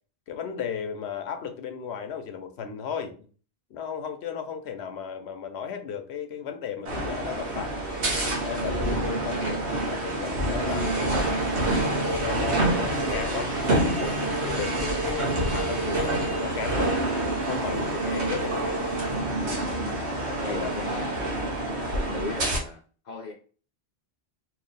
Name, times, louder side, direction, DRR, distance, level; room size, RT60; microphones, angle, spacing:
voice 1, 0.3-3.2 3.7-7.8 8.4-11.2 12.0-16.9 17.5-18.7 20.3-20.7, left 7 dB, 80° left, 0.9 m, -35 dB
sound 1, 6.8-22.6, right 1 dB, 85° right, 1.2 m, -27 dB
voice 2, 20.4-21.3 21.9-23.3, left 3 dB, 50° left, 0.6 m, -37 dB
2.9 x 2.8 x 4.0 m
omnidirectional pair, 1.1 m